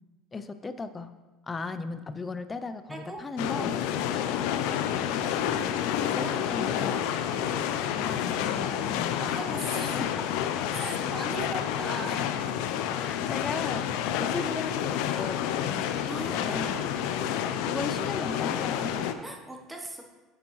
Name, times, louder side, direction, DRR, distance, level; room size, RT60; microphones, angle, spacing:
voice 1, 0.3-1.1 1.4-3.7 5.1-7.1 7.9-9.2 9.9-10.2 13.0-15.9 16.2-16.8 17.6-19.2, left 3 dB, 20° left, 11 dB, 0.4 m, -37 dB
voice 2, 2.9-3.2 3.5-3.7 3.9-4.1 6.2-7.0 7.3-7.6 9.2-10.0 10.7-12.4 16.0-17.4 19.2-20.0, right 1 dB, 10° right, 2 dB, 1.0 m, -39 dB
sound 1, 3.4-19.1, left 9 dB, 75° left, 0.5 m, -29 dB
8.6 x 7.0 x 3.1 m, 1.2 s
supercardioid pair, 130°, 0 cm